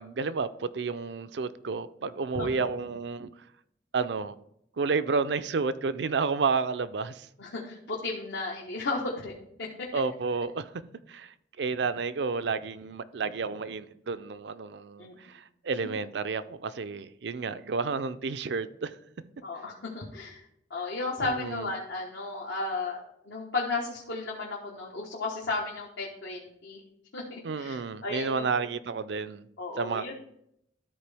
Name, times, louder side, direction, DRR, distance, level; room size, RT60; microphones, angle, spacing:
voice 1, 0.0-3.3 3.9-4.3 4.8-7.3 9.9-10.7 11.1-19.0 21.2-21.7 27.4-29.5 29.8-30.1, right 4 dB, 70° right, 0.5 m, -31 dB
voice 2, 7.4-9.3 9.6-9.9 15.0-15.2 19.4-20.4 20.7-26.8 27.1-28.7 29.6-30.1, left 3 dB, 75° left, 1.3 m, -34 dB
13.0 x 4.5 x 3.4 m
head